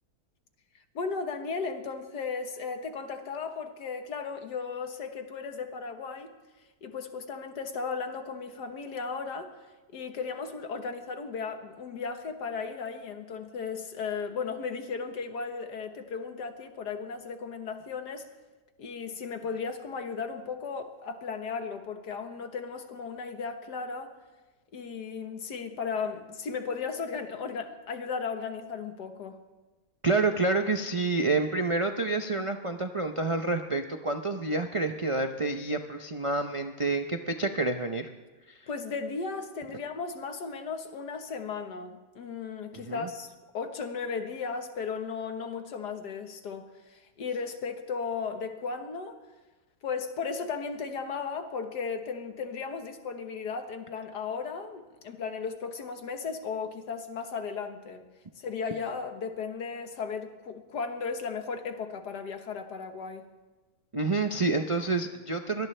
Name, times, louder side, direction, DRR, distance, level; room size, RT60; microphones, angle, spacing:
voice 1, 1.0-6.3 6.8-9.5 9.9-18.3 18.8-24.2 24.7-29.4 38.7-43.3 43.5-49.2 49.8-58.0 58.4-63.3, left 5 dB, 75° left, 6 dB, 1.9 m, -35 dB
voice 2, 30.0-38.1 42.7-43.1 63.9-65.7, right 3 dB, 55° right, 5 dB, 0.3 m, -28 dB
23.5 x 18.5 x 3.3 m, 1.2 s
omnidirectional pair, 1.8 m